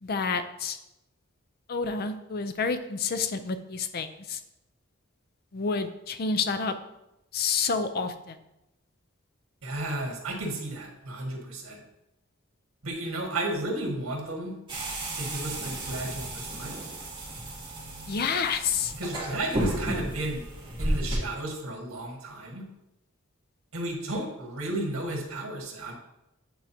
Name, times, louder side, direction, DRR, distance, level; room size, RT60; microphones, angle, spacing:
voice 1, 0.0-0.8 1.7-4.4 5.5-6.7 7.3-8.4 18.1-18.9, left 5 dB, 50° left, 10 dB, 0.5 m, -29 dB
voice 2, 9.6-11.8 12.8-14.5 15.2-16.7 19.0-20.4 20.8-22.7 23.7-25.9, right 1 dB, 85° right, -1 dB, 1.7 m, -33 dB
sound 1, 14.7-21.2, right 1 dB, 25° right, 2.2 m, -33 dB
9.0 x 4.7 x 2.8 m, 0.89 s
head